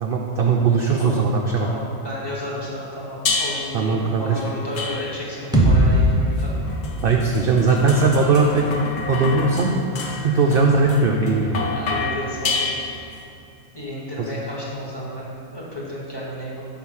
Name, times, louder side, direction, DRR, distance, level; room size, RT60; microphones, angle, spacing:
voice 1, 0.0-1.7 3.7-4.4 7.0-8.7 9.1-9.7 10.2-11.7 14.2-14.3, right 4 dB, 65° right, 1 dB, 0.5 m, -19 dB
voice 2, 1.6-6.5 7.5-7.6 11.7-12.8 13.7-16.6, left 1 dB, 20° left, -5 dB, 1.1 m, -32 dB
sound 1, 3.3-3.8 4.8-5.4 6.4-13.2, left 3 dB, 65° left, 1.1 m, -29 dB
sound 2, 5.5-9.4, equal, 5° right, 0.3 m, -22 dB
5.5 x 4.2 x 6.2 m, 2.5 s
omnidirectional pair, 1.5 m